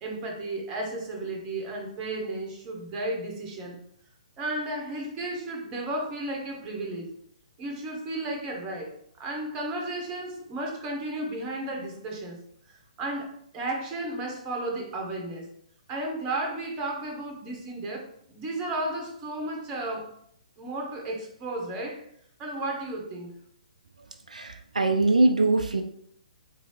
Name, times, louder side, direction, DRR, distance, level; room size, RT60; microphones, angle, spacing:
voice 1, 0.0-3.8 4.4-7.1 7.6-12.4 12.7-15.5 15.9-20.1 20.6-22.1 22.4-23.3, right 2 dB, 20° right, 1 dB, 0.9 m, -33 dB
voice 2, 24.3-25.8, right 2 dB, 75° right, 5 dB, 0.3 m, -22 dB
3.7 x 2.7 x 3.2 m, 0.68 s
figure-of-eight pair, 125°, 4 cm